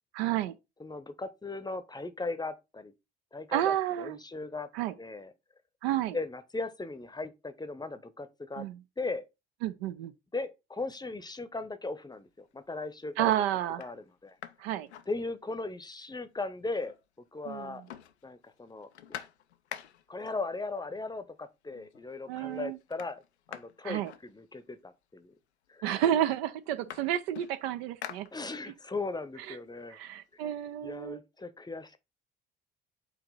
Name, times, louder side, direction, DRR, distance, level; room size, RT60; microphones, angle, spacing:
voice 1, 0.1-0.6 3.5-4.2 4.7-4.9 5.8-6.2 8.6-8.8 9.6-10.1 13.2-13.9 14.6-14.9 17.5-17.8 22.3-22.8 23.8-24.1 25.8-28.3 29.5-29.6 29.9-31.2, right 12 dB, 65° right, 0.7 m, -30 dB
voice 2, 0.8-2.9 3.3-4.7 5.0-5.3 6.1-8.7 9.0-9.2 10.3-13.3 13.8-14.4 15.1-16.9 17.3-17.8 18.2-19.3 20.1-23.2 23.5-25.3 25.7-26.0 28.3-30.0 30.8-32.0, left 3 dB, 10° left, 0.8 m, -38 dB
sound 1, 12.3-12.7 13.2-13.3 13.7-15.8 16.1-16.2 16.4-17.3 17.5-20.3 21.2-21.3 21.7-22.2 22.4-24.9 25.7-25.8 26.1-28.9 29.3-31.0, left 10 dB, 80° left, 0.5 m, -48 dB
8.4 x 2.9 x 4.0 m
figure-of-eight pair, 50°, 33 cm